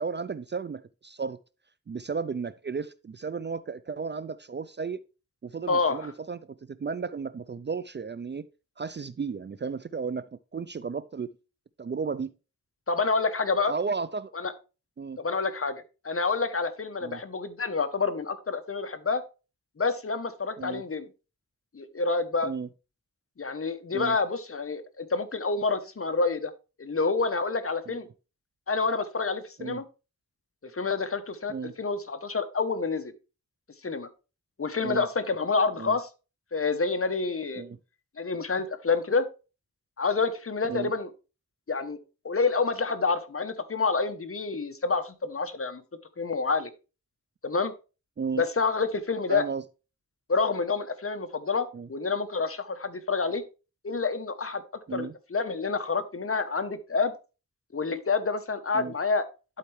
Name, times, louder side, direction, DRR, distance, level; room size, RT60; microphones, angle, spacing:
voice 1, 0.0-1.4 1.9-5.0 5.4-8.4 8.8-11.3 11.8-12.3 13.7-14.3 15.0-15.2 17.0-17.2 20.6-20.8 22.4-22.7 23.9-24.2 27.9-28.0 29.6-29.8 31.5-31.7 34.8-35.1 35.8-36.0 37.6-37.8 40.7-40.9 48.2-48.4 49.3-49.6 51.7-51.9 54.9-55.1 58.7-58.9, right 5 dB, 35° right, 0.4 m, -34 dB
voice 2, 5.7-6.1 12.9-13.7 14.3-14.5 15.2-19.2 19.8-21.1 21.7-22.5 23.4-26.5 26.8-28.1 28.7-29.8 30.6-33.1 33.8-34.1 34.6-36.1 36.5-37.6 38.2-39.3 40.0-41.1 41.7-42.0 42.2-45.8 46.2-46.7 47.4-47.7 48.4-49.4 50.3-53.4 53.8-54.6 54.9-57.1 57.7-59.3, left 4 dB, 45° left, 0.9 m, -28 dB
11.5 x 4.4 x 3.2 m
wide cardioid pair, 65°, 32 cm